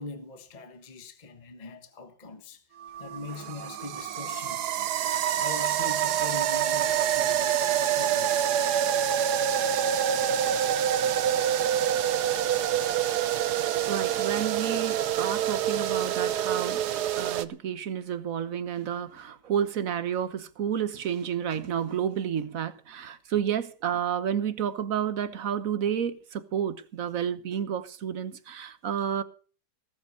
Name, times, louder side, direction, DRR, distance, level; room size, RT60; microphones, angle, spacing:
voice 1, 0.0-2.6 3.0-4.9 5.3-8.6, left 3 dB, 30° left, 1.4 m, -42 dB
sound 1, 2.8-17.4, right 10 dB, 75° right, 1.4 m, -26 dB
Keyboard (musical), 9.4-15.1, left 4 dB, 50° left, 3.0 m, -52 dB
voice 2, 13.9-16.8 17.2-29.2, right 8 dB, 60° right, 1.4 m, -30 dB
18.5 x 8.1 x 6.5 m
omnidirectional pair, 1.7 m